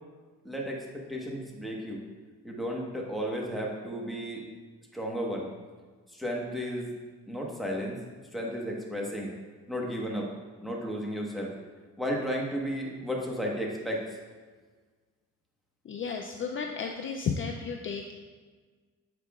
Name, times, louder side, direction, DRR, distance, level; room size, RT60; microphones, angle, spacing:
voice 1, 0.4-2.0 2.4-4.4 4.9-5.5 6.1-6.9 7.3-8.0 8.3-9.3 9.7-10.3 10.6-11.5 12.0-14.0, equal, ahead, -2 dB, 1.3 m, -33 dB
voice 2, 15.8-18.1, left 6 dB, 40° left, 3 dB, 0.5 m, -33 dB
8.2 x 4.8 x 2.4 m, 1.4 s
cardioid pair, 90°, 30 cm